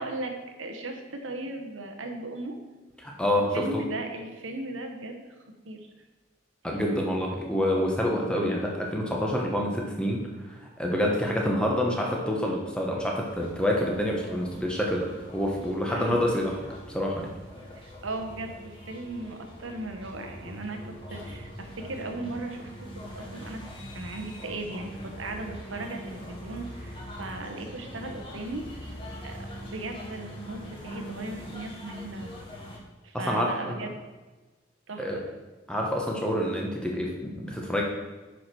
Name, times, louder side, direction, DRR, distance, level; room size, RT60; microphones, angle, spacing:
voice 1, 0.0-2.6 3.3-5.3 5.6-5.9 6.6-6.8 15.9-16.3 17.7-20.8 21.1-23.6 23.9-28.7 29.2-32.3 33.0-33.9 34.9-35.2, right 2 dB, 80° right, 5 dB, 1.3 m, -37 dB
voice 2, 3.0-3.9 6.6-15.1 15.3-17.3 33.1-33.9 35.0-35.2 35.7-37.8, equal, 5° left, -1 dB, 1.3 m, -27 dB
sound 1, 13.2-32.8, equal, 25° left, 1.8 m, -43 dB
9.4 x 5.0 x 6.1 m, 1.2 s
head